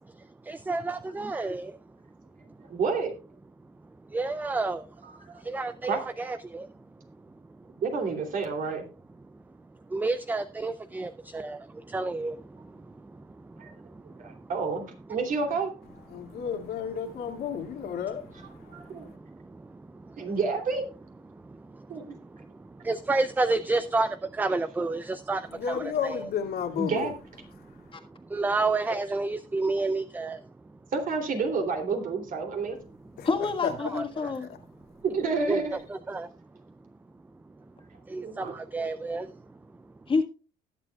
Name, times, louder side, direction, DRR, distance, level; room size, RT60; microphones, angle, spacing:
voice 1, 0.5-1.7 4.1-4.8 5.5-6.6 9.9-11.6 11.9-12.4 22.8-24.1 24.4-25.4 25.7-26.3 28.3-30.4 33.8-34.3 35.5-35.6 35.9-36.3 38.1-39.3, right 3 dB, 10° right, 0.4 m, -29 dB
voice 2, 2.7-3.1 5.0-5.4 5.8-6.0 7.8-8.8 13.6-13.7 14.2-15.7 18.7-19.1 20.2-20.8 21.9-22.0 26.8-27.1 30.9-32.8 35.0-35.8 38.2-38.5, right 4 dB, 55° right, 3.0 m, -29 dB
voice 3, 16.1-19.1 25.5-27.1 33.2-33.3 33.6-34.3, left 7 dB, 65° left, 2.2 m, -33 dB
voice 4, 33.2-34.5 40.1-40.2, left 4 dB, 30° left, 1.5 m, -27 dB
19.5 x 7.5 x 2.3 m
cardioid pair, 110°, 17 cm